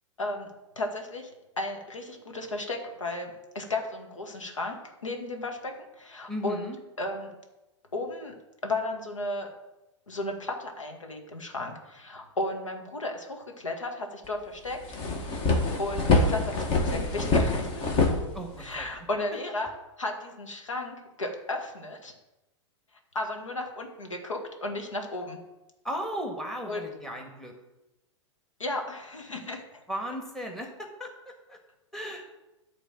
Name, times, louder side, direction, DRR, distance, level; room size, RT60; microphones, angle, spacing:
voice 1, 0.2-0.5 0.8-1.3 1.6-6.7 7.0-7.3 7.9-8.3 8.6-9.5 10.1-14.8 15.8-17.8 18.6-19.7 20.0-22.1 23.1-25.4 26.7-26.8 28.6-29.8, left 2 dB, 85° left, 3 dB, 1.8 m, -34 dB
voice 2, 6.3-6.8 18.3-19.0 25.8-27.5 29.9-31.6 31.9-32.2, equal, 5° left, 2 dB, 1.7 m, -36 dB
sound 1, 14.3-14.4 14.7-18.9, left 3 dB, 35° left, 1.8 m, -25 dB
11.0 x 4.0 x 7.4 m, 0.99 s
figure-of-eight pair, 105°, 16 cm